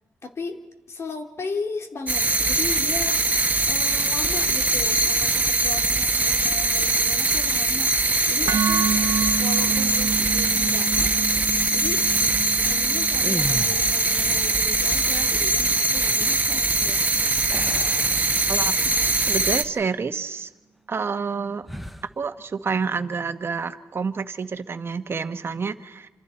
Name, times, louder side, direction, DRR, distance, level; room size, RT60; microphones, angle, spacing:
voice 1, 0.2-0.6 0.9-7.9 8.3-11.4 11.7-12.1 12.6-17.0, left 4 dB, 50° left, 5 dB, 2.7 m, -36 dB
sound 1, 2.1-19.6, right 3 dB, 25° right, 1.3 m, -22 dB
sound 2, 8.5-16.6, right 6 dB, 60° right, 0.6 m, -30 dB
sound 3, 9.6-10.2 13.1-14.2 17.5-18.9 19.4-19.6 21.6-22.1, equal, ahead, 1.1 m, -35 dB
voice 2, 18.5-20.5 20.9-21.7 22.2-26.1, right 5 dB, 45° right, 9 dB, 1.3 m, -29 dB
28.5 x 26.5 x 4.4 m, 1.2 s
cardioid pair, 90°, 6 cm